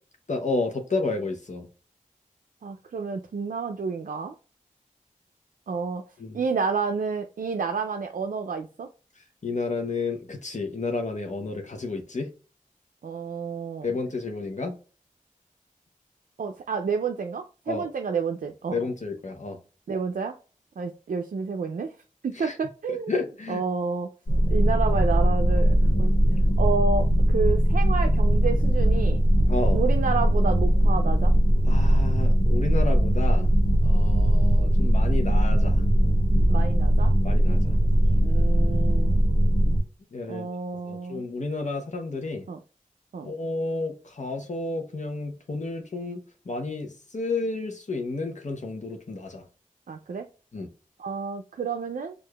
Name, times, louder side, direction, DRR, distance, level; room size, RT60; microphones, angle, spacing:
voice 1, 0.3-1.7 6.2-6.4 9.4-12.3 13.8-14.7 17.7-17.8 18.7-19.6 22.4-22.5 22.9-23.6 29.5-29.8 31.6-33.5 33.8-35.8 37.2-37.8 40.1-40.5 40.9-42.5 43.2-46.2 46.5-49.4 50.5-50.7, left 3 dB, 60° left, 0.7 m, -31 dB
voice 2, 2.6-4.3 5.7-6.0 6.3-8.9 13.0-13.9 16.4-18.8 19.9-20.4 20.8-21.9 22.2-23.1 23.5-24.1 24.5-26.1 26.6-29.2 29.7-31.3 36.5-37.1 38.2-39.2 40.3-41.2 42.5-42.6 43.1-43.3 49.9-50.3 51.0-52.1, right 5 dB, 75° right, 0.4 m, -30 dB
sound 1, 24.3-39.8, equal, 75° left, 1.2 m, -20 dB
4.6 x 2.4 x 2.3 m
wide cardioid pair, 50°, 14 cm